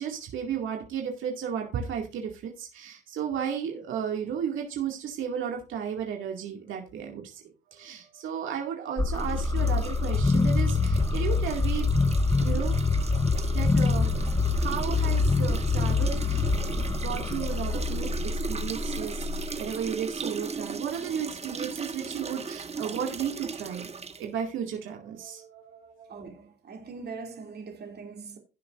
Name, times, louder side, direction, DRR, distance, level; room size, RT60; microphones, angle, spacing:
voice 1, 0.0-7.4 7.7-11.9 12.4-12.7 13.5-26.2, right 8 dB, 80° right, 2.3 m, -34 dB
sound 1, 9.0-19.9, left 3 dB, 15° left, 0.8 m, -25 dB
sound 2, 9.2-24.3, right 5 dB, 30° right, 1.2 m, -38 dB
voice 2, 26.1-28.4, right 4 dB, 55° right, 2.7 m, -41 dB
16.0 x 7.1 x 2.6 m
cardioid pair, 90°, 20 cm